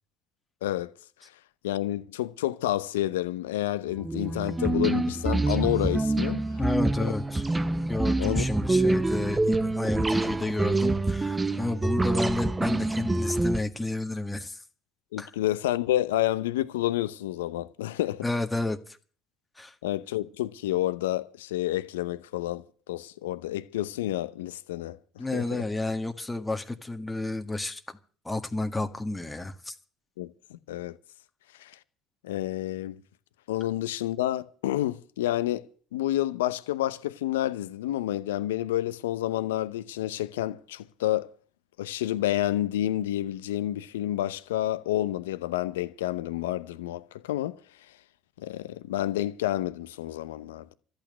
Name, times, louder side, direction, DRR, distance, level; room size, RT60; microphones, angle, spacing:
voice 1, 0.6-0.9 1.6-6.4 8.2-8.4 15.1-18.2 19.8-25.6 30.2-31.0 31.6-31.8 32.2-33.0 33.5-41.3 41.8-47.6 48.4-50.7, left 14 dB, 85° left, 0.8 m, -29 dB
sound 1, 3.9-13.6, right 2 dB, 20° right, 1.1 m, -26 dB
voice 2, 6.6-7.4 7.9-14.6 15.2-15.3 18.2-19.0 19.6-19.8 25.2-28.0 28.3-29.8, left 2 dB, 15° left, 1.7 m, -31 dB
13.5 x 8.9 x 9.2 m
hypercardioid pair, 55°, 0 cm